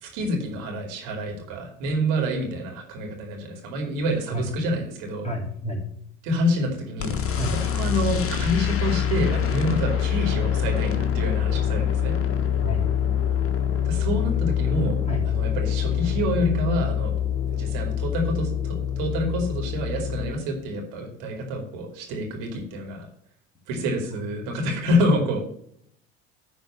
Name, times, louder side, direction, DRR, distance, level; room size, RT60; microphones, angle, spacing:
voice 1, 0.0-5.3 6.2-12.1 13.8-14.9 15.3-17.1 17.5-23.1 23.7-25.4, equal, 60° right, 2 dB, 2.7 m, -27 dB
voice 2, 5.2-5.8 7.4-7.6 12.6-12.8 15.0-15.2, right 1 dB, 20° left, -2 dB, 3.3 m, -29 dB
sound 1, 7.0-20.3, left 9 dB, 40° left, 1.4 m, -25 dB
10.5 x 4.0 x 6.8 m, 0.71 s
hypercardioid pair, 70°, 36 cm